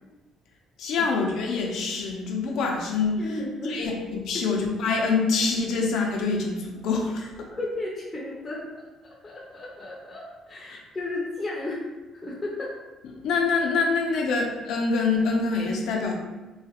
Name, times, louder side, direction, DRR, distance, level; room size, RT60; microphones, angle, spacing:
voice 1, 0.8-3.2 3.7-7.3 10.7-10.8 13.2-16.1, left 4 dB, 70° left, 0 dB, 0.6 m, -25 dB
voice 2, 3.2-3.9 4.3-4.5 7.5-8.7 9.0-11.8 12.1-12.8, left 2 dB, 20° left, -5 dB, 0.7 m, -34 dB
3.8 x 2.4 x 2.9 m, 1.1 s
cardioid pair, 130°, 0 cm